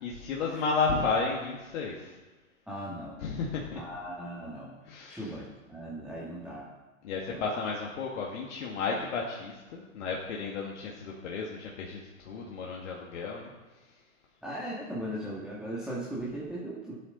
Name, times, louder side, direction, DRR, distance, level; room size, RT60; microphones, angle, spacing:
voice 1, 0.0-2.1 3.2-3.8 4.8-5.3 7.0-13.5, left 4 dB, 55° left, -2 dB, 2.0 m, -33 dB
voice 2, 2.7-3.2 3.8-4.8 5.1-6.7 7.3-7.4 14.4-17.0, right 1 dB, ahead, -7 dB, 2.2 m, -38 dB
15.0 x 8.7 x 3.9 m, 1.2 s
hypercardioid pair, 110°, 41 cm